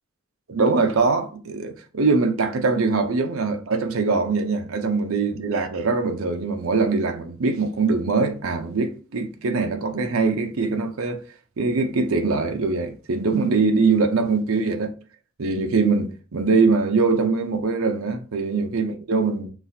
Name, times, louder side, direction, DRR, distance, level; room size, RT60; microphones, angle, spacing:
voice 1, 0.5-11.2 11.6-14.9 15.4-19.5, right 4 dB, 80° right, 0.6 m, -22 dB
6.0 x 2.4 x 2.7 m
head